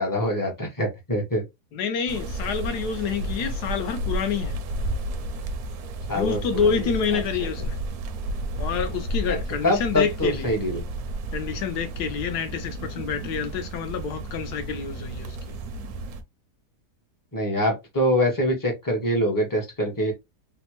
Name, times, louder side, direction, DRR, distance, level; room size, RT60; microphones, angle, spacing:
voice 1, 0.0-1.4 6.1-6.9 7.1-7.2 9.3-10.8 17.3-20.1, equal, 20° left, 0.5 m, -24 dB
voice 2, 1.7-4.6 6.1-7.8 8.6-10.5 11.3-15.4, left 6 dB, 70° left, 1.2 m, -28 dB
sound 1, 2.1-16.2, right 1 dB, 70° right, 1.0 m, -32 dB
3.4 x 2.1 x 2.9 m
omnidirectional pair, 1.8 m